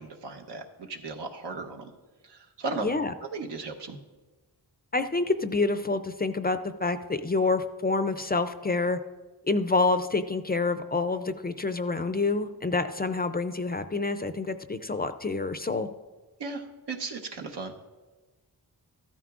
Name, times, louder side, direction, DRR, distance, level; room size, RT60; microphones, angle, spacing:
voice 1, 0.0-1.9 2.2-2.9 3.2-4.0 16.4-17.9, right 3 dB, 85° right, 3 dB, 1.1 m, -36 dB
voice 2, 2.8-3.1 4.9-9.0 9.4-15.9, left 3 dB, 25° left, 10 dB, 0.3 m, -27 dB
14.0 x 13.0 x 2.4 m, 1.2 s
wide cardioid pair, 130°, 40 cm